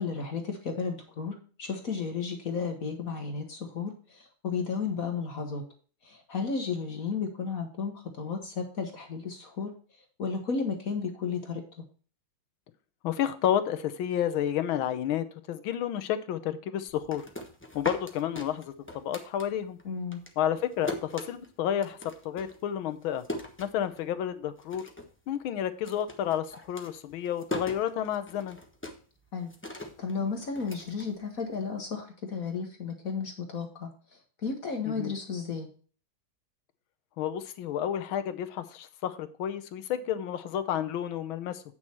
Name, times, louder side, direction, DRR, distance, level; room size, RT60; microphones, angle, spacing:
voice 1, 0.0-5.6 6.0-9.7 10.2-11.6 19.8-20.2 29.3-33.9 34.4-35.7, left 5 dB, 45° left, 4 dB, 1.4 m, -33 dB
voice 2, 13.0-17.2 17.7-19.8 20.4-22.0 22.2-23.2 23.6-24.9 25.3-28.6 34.9-35.1 37.2-41.6, left 10 dB, 75° left, 11 dB, 1.6 m, -31 dB
sound 1, 16.9-19.8 20.1-24.3 24.6-25.2 25.4-31.7, left 1 dB, 10° left, 0.6 m, -41 dB
8.7 x 6.3 x 4.3 m, 0.40 s
omnidirectional pair, 2.3 m